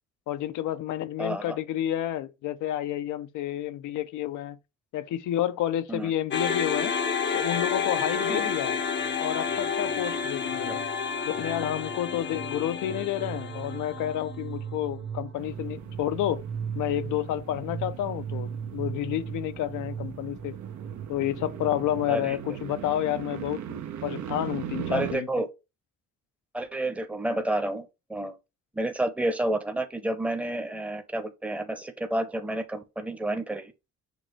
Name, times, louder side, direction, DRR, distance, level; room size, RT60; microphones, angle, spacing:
voice 1, 0.3-4.6 4.9-6.9 7.3-8.8 9.2-10.8 11.3-16.4 16.7-20.5 21.1-25.4, left 12 dB, 80° left, 0.6 m, -30 dB
voice 2, 1.2-1.6 5.9-6.1 8.3-8.5 10.7-10.8 22.1-22.4 24.9-25.5 26.5-28.4 28.7-33.7, right 1 dB, 5° right, 0.7 m, -30 dB
sound 1, 6.3-14.6, left 6 dB, 40° left, 0.6 m, -30 dB
sound 2, 9.0-9.2 9.5-22.3, right 7 dB, 45° right, 1.0 m, -39 dB
sound 3, 15.4-25.1, right 10 dB, 75° right, 0.8 m, -39 dB
6.4 x 2.4 x 3.1 m
cardioid pair, 90°, 30 cm